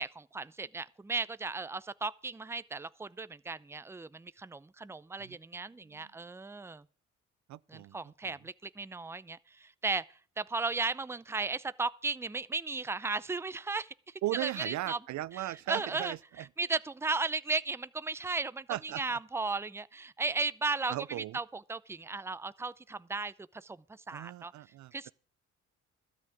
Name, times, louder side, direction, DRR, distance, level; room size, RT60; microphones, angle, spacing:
voice 1, 0.0-6.8 7.7-13.9 14.3-15.0 15.3-20.9 21.3-23.8 24.1-24.5 24.9-25.1, right 3 dB, 10° right, 0.5 m, -35 dB
voice 2, 7.5-8.0 8.2-8.3 14.2-16.4 18.7-19.2 20.9-21.4 24.1-25.1, right 15 dB, 70° right, 0.5 m, -37 dB
13.0 x 5.9 x 9.0 m
cardioid pair, 90°, 30 cm